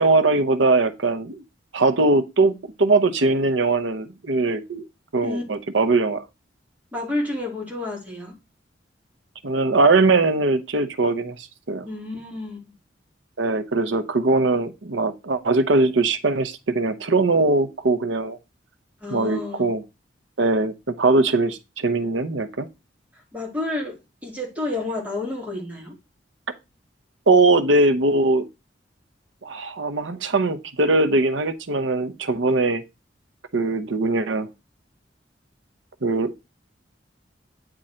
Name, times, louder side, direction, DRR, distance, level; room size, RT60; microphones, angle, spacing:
voice 1, 0.0-1.4 1.7-4.8 5.1-6.2 9.4-11.9 13.4-18.4 19.1-19.8 20.4-22.7 27.3-28.5 29.4-32.8 33.5-34.5 36.0-36.3, right 3 dB, 85° right, 0.8 m, -21 dB
voice 2, 6.9-8.3 11.9-12.6 19.0-19.7 23.3-25.9, left 2 dB, 10° right, 2.5 m, -30 dB
8.9 x 3.8 x 4.3 m
head